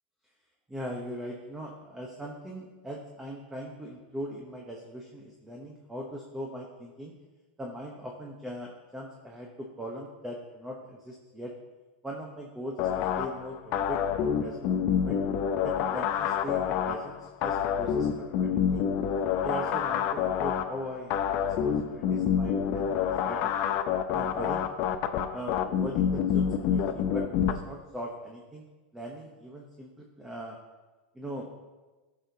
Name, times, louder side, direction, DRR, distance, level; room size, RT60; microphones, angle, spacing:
voice 1, 0.7-7.1 7.6-11.5 12.0-15.2 15.6-18.8 19.4-23.5 24.1-24.7 25.3-28.7 28.9-30.6 31.1-31.5, equal, 5° right, -1 dB, 0.9 m, -40 dB
sound 1, 12.8-27.5, left 8 dB, 40° left, 0.6 m, -28 dB
15.0 x 6.3 x 2.8 m, 1.2 s
supercardioid pair, 150°, 6 cm